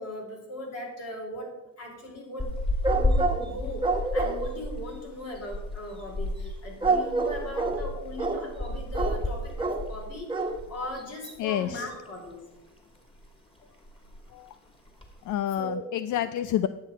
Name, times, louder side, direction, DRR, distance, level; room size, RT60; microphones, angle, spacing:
voice 1, 0.0-1.5 1.8-2.6 2.9-3.9 4.1-10.3 10.7-12.4 15.6-15.9, left 1 dB, 55° left, 0 dB, 4.1 m, -38 dB
sound 1, 2.4-10.9 11.2-11.4 11.8-12.6 12.9-13.3 13.6-13.7 13.8-14.3 14.8-15.3, left 1 dB, 15° left, 2.5 m, -32 dB
sound 2, 2.8-3.5 3.8-4.5 6.8-7.8 8.2-8.5 8.9-9.2 9.6-9.9 10.3-10.6 11.0-11.1 11.3-11.4, right 3 dB, 15° right, 1.3 m, -27 dB
voice 2, 11.4-11.9 14.3-14.5 15.3-16.7, left 11 dB, 75° left, 12 dB, 0.5 m, -29 dB
10.5 x 7.6 x 5.3 m, 1.0 s
cardioid pair, 90°, 30 cm